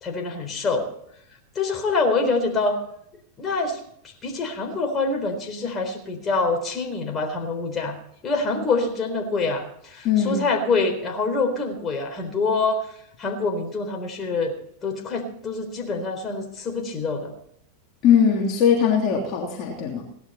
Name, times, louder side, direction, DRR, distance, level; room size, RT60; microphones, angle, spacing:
voice 1, 0.0-0.9 1.6-2.8 3.4-3.8 4.2-8.0 8.2-12.8 13.2-14.6 14.8-17.3, left 3 dB, 30° left, 3 dB, 3.9 m, -25 dB
voice 2, 10.0-10.4 18.0-20.0, left 7 dB, 45° left, -1 dB, 3.0 m, -20 dB
18.0 x 11.5 x 4.3 m, 0.71 s
hypercardioid pair, 95°, 0 cm